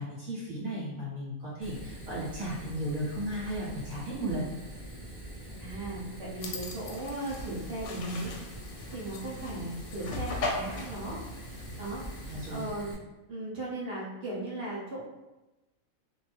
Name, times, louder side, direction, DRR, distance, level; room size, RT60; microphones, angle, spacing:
voice 1, 0.0-4.5 12.2-12.7, right 1 dB, 75° right, -8 dB, 1.4 m, -35 dB
Fire, 1.6-12.9, right 1 dB, 10° right, 1.3 m, -44 dB
voice 2, 5.6-8.3 8.9-11.2 11.8-12.1 12.5-13.0 13.3-15.0, right 1 dB, 50° right, -6 dB, 1.0 m, -37 dB
sound 1, 6.4-12.6, left 3 dB, 70° left, 0.9 m, -39 dB
2.7 x 2.5 x 3.3 m, 1.0 s
omnidirectional pair, 1.5 m